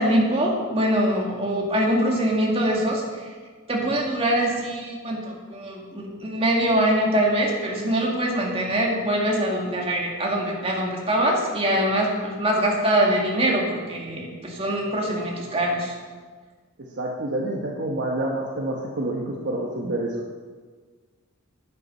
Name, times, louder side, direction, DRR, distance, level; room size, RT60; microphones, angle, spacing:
voice 1, 0.0-3.0 3.7-15.9, right 1 dB, 25° right, -2 dB, 2.2 m, -23 dB
voice 2, 17.0-20.2, right 1 dB, 55° right, -1 dB, 1.1 m, -28 dB
10.5 x 9.7 x 5.5 m, 1.5 s
head